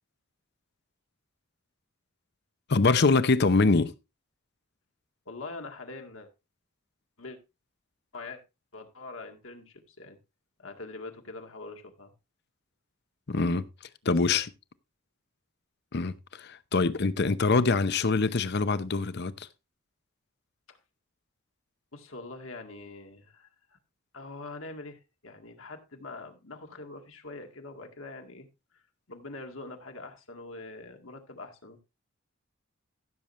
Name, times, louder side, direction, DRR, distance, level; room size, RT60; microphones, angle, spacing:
voice 1, 2.7-3.9 13.3-13.7 14.0-14.5 15.9-19.5, left 3 dB, 55° left, 0.7 m, -24 dB
voice 2, 5.3-6.3 7.2-7.4 8.1-8.4 8.7-10.2 10.6-12.1 14.0-14.4 20.7-20.8 21.9-23.5 24.1-28.5 28.7-28.8 29.1-31.8, left 3 dB, 80° left, 1.9 m, -43 dB
15.5 x 7.1 x 3.1 m
head